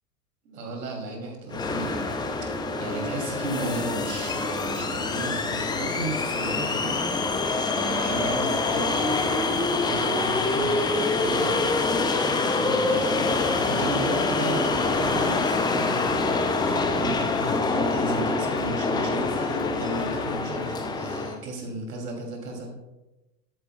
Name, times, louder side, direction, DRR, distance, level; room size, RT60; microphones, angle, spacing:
voice 1, 0.4-2.0 2.4-2.5 2.8-9.2 9.7-13.3 13.6-22.7, right 2 dB, 70° right, 1 dB, 3.0 m, -35 dB
sound 1, 1.5-21.4, left 3 dB, 10° left, 0.5 m, -26 dB
sound 2, 13.2-20.4, left 5 dB, 45° left, 1.4 m, -34 dB
12.5 x 8.9 x 2.3 m, 1.0 s
hypercardioid pair, 95°, 49 cm